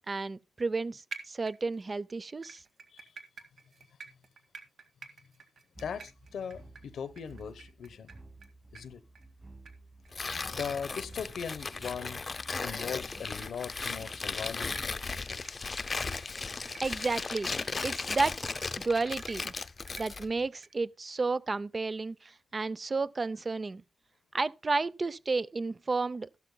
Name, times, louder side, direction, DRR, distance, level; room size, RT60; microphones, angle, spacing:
voice 1, 0.1-2.6 16.8-18.4 18.8-19.5 20.0-23.8 24.3-26.3, right 3 dB, 35° right, 0.5 m, -32 dB
sound 1, 1.1-1.9 2.4-8.5 8.7-8.8 9.1-9.3 9.7-9.8 10.0-10.1 10.6-10.7 11.0-11.1 11.6-11.7 12.7-12.8 13.2-13.4 13.9-14.1 14.6-14.8 15.3-15.5 16.0-16.2 16.6-16.8 17.3-17.4 17.9-18.0 18.6-18.7 19.2-19.4 19.9-20.0 20.5-20.7, right 5 dB, 70° right, 1.9 m, -47 dB
voice 2, 5.8-8.1 8.7-9.0 10.5-12.3 12.6-15.5 16.9-17.0, left 7 dB, 85° left, 0.9 m, -39 dB
sound 2, 5.8-15.2, right 2 dB, 15° right, 2.2 m, -54 dB
Tearing, 10.1-20.3, left 4 dB, 35° left, 0.7 m, -36 dB
14.5 x 12.0 x 2.2 m
cardioid pair, 100°, 0 cm